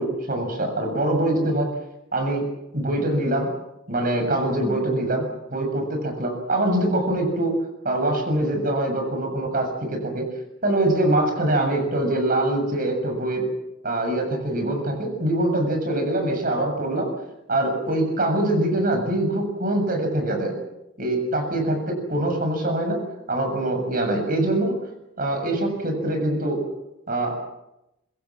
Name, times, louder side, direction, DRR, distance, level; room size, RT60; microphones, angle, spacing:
voice 1, 0.0-1.7 2.1-2.4 2.7-3.5 3.9-7.6 7.8-10.3 10.6-13.5 13.8-17.1 17.5-20.5 21.0-23.0 23.3-24.7 25.2-26.6 27.1-27.3, right 1 dB, 45° right, 4 dB, 7.2 m, -23 dB
27.0 x 22.0 x 7.4 m, 0.90 s
head